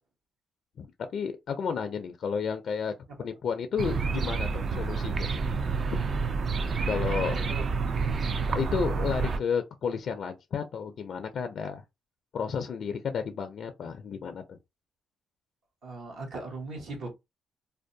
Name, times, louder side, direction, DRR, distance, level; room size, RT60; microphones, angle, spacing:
voice 1, 1.1-2.9 3.2-5.3 6.9-7.4 8.5-11.8 12.3-14.6, left 6 dB, 60° left, 0.4 m, -32 dB
sound 1, 3.8-9.4, right 4 dB, 50° right, 0.3 m, -29 dB
voice 2, 7.2-8.1 15.8-17.1, right 3 dB, 70° right, 1.1 m, -39 dB
2.5 x 2.1 x 2.6 m
cardioid pair, 90°, 0 cm